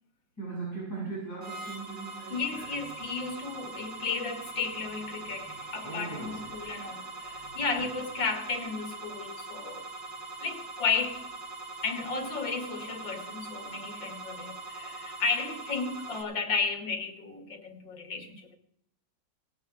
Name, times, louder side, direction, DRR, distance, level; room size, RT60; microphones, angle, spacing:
voice 1, 0.4-2.8 5.8-6.5 7.6-7.7, right 3 dB, 10° left, 7.6 m, -39 dB
sound 1, 1.4-16.2, right 3 dB, 70° right, 3.6 m, -42 dB
voice 2, 2.3-9.8 10.4-11.2 11.8-18.6, left 4 dB, 90° left, 2.8 m, -33 dB
18.5 x 10.5 x 4.9 m
omnidirectional pair, 2.0 m